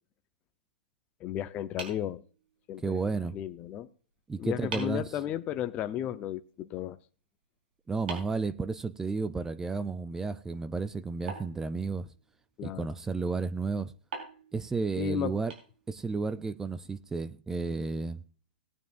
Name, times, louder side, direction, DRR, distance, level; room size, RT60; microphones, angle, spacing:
voice 1, 1.2-2.2 2.7-3.0 3.3-3.9 4.4-7.0 12.6-12.9 15.0-15.4, left 11 dB, 25° left, 0.7 m, -34 dB
sound 1, 1.8-2.9 4.1-4.2 4.7-5.1 8.1-9.3 11.3-12.4 14.1-16.2, right 5 dB, 65° right, 4.3 m, -44 dB
voice 2, 2.8-3.4 4.3-5.0 7.9-12.1 12.6-13.9 14.5-15.5 15.9-18.2, right 4 dB, 10° right, 0.4 m, -32 dB
18.0 x 9.3 x 2.5 m
hypercardioid pair, 145°, 6 cm